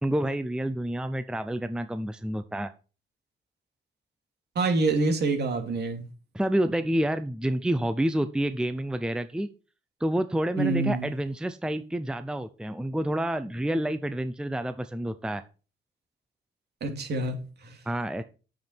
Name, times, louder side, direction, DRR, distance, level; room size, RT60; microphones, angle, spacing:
voice 1, 0.0-2.7 6.3-9.5 10.0-15.4 17.9-18.2, right 1 dB, 5° right, 0.7 m, -28 dB
voice 2, 4.5-6.0 10.6-11.1 16.8-17.8, right 3 dB, 55° right, 2.8 m, -26 dB
9.3 x 7.3 x 4.5 m
cardioid pair, 90°, 20 cm